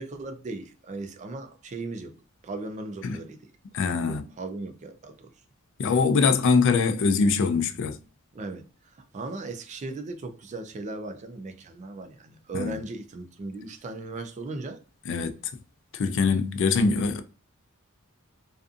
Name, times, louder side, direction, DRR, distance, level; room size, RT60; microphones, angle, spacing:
voice 1, 0.0-2.2 2.4-3.5 4.0-5.3 8.3-14.8, right 2 dB, 35° right, 0.3 m, -37 dB
voice 2, 3.7-4.2 5.8-8.0 12.5-12.8 15.1-15.3 15.9-17.2, left 4 dB, 60° left, 0.4 m, -23 dB
2.5 x 2.4 x 2.4 m
head